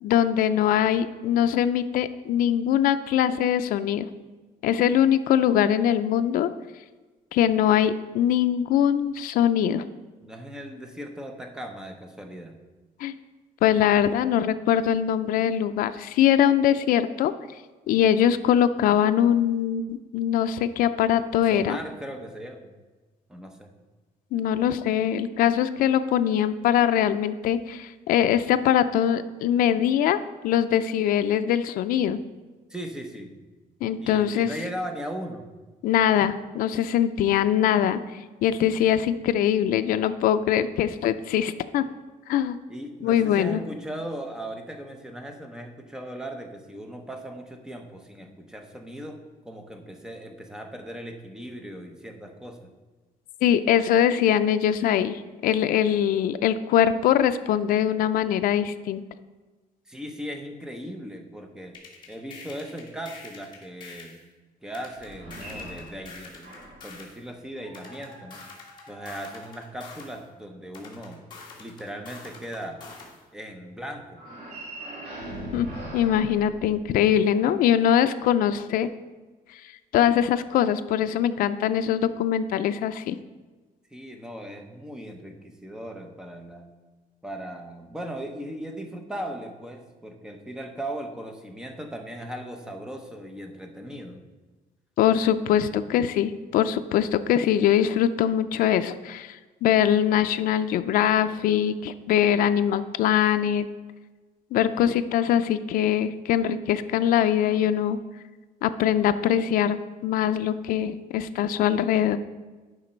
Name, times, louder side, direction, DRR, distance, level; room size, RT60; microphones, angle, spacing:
voice 1, 0.0-4.1 4.6-6.5 7.3-9.9 13.0-13.1 13.6-17.3 17.9-21.8 24.3-30.2 30.4-32.2 33.8-34.5 35.8-41.8 42.3-42.6 43.0-43.6 53.4-59.0 75.5-78.9 79.9-83.2 95.0-103.7 104.5-108.0 108.6-112.2, left 10 dB, 70° left, 9 dB, 0.4 m, -22 dB
voice 2, 10.2-12.5 21.5-22.8 23.3-23.7 32.7-33.4 34.0-35.5 42.7-49.2 49.4-52.7 59.9-61.8 62.1-64.2 64.6-66.6 66.8-68.4 68.9-71.2 71.6-72.8 73.3-74.2 83.9-86.7 87.2-94.2, right 1 dB, 5° right, 4 dB, 0.7 m, -38 dB
sound 1, 61.7-64.2 64.7-67.2 67.7-70.2 70.7-73.2, left 4 dB, 30° left, 1.8 m, -45 dB
sound 2, 64.9-67.0 67.6-70.0 74.1-77.3, right 1 dB, 85° right, 2.1 m, -41 dB
10.5 x 5.2 x 4.4 m, 1.3 s
cardioid pair, 170°, 15 cm